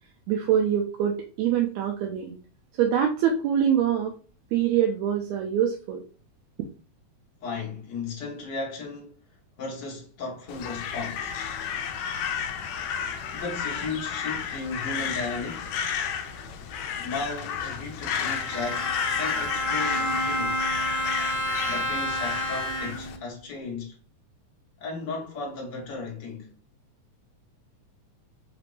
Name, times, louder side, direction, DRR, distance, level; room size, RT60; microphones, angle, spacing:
voice 1, 0.3-2.4 2.8-4.1 4.5-6.0, right 9 dB, 80° right, 1.7 m, -24 dB
voice 2, 7.4-9.2 9.6-11.4 13.3-15.7 17.0-20.7 21.7-24.0 24.8-26.5, left 3 dB, 60° left, 1.1 m, -35 dB
Crow, 10.5-23.2, left 7 dB, 80° left, 1.7 m, -32 dB
Bowed string instrument, 18.2-23.2, equal, 30° right, 0.7 m, -29 dB
5.0 x 2.5 x 3.2 m
omnidirectional pair, 3.6 m